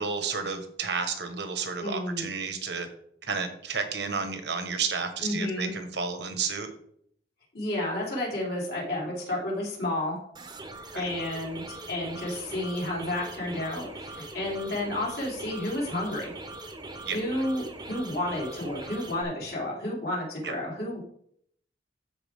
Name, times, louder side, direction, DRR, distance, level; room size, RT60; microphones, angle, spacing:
voice 1, 0.0-2.9 3.2-6.7 10.9-11.0 17.0-17.2 20.4-20.5, right 5 dB, 70° right, 7 dB, 1.2 m, -31 dB
voice 2, 1.8-2.3 5.2-5.7 7.5-10.2 10.9-16.3 17.1-21.0, left 1 dB, 60° left, -4 dB, 3.5 m, -31 dB
sound 1, 10.3-19.2, right 2 dB, 25° right, 0.9 m, -41 dB
13.0 x 4.8 x 3.5 m, 0.67 s
head